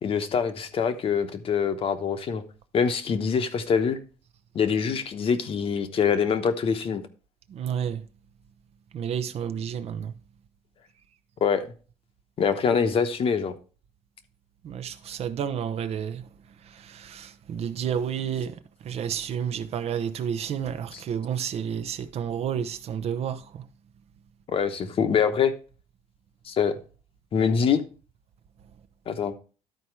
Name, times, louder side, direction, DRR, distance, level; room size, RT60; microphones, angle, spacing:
voice 1, 0.0-2.4 2.7-4.0 4.5-7.0 11.4-11.7 12.4-13.5 24.5-25.5 26.4-26.8 27.3-27.8 29.1-29.3, left 6 dB, 45° left, 1.1 m, -24 dB
voice 2, 7.5-8.1 8.9-10.1 14.6-16.3 16.6-23.7, right 8 dB, 55° right, 0.8 m, -31 dB
12.0 x 4.3 x 4.7 m
cardioid pair, 105°, 13 cm